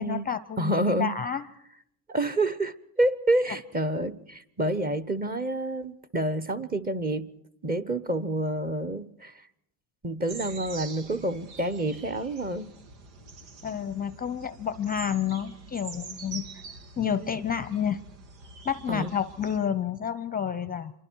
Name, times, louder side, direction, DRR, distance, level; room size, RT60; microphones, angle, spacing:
voice 1, 0.0-1.5 13.6-16.4 17.0-18.0 18.6-20.9, left 8 dB, 20° left, 15 dB, 0.8 m, -30 dB
voice 2, 0.6-1.1 2.1-7.3 7.6-9.3 10.0-12.7 18.9-19.1, right 1 dB, 20° right, 9 dB, 1.1 m, -28 dB
sound 1, 10.3-19.6, right 4 dB, 85° right, 3.0 m, -45 dB
27.5 x 23.5 x 4.7 m, 0.73 s
supercardioid pair, 125°, 49 cm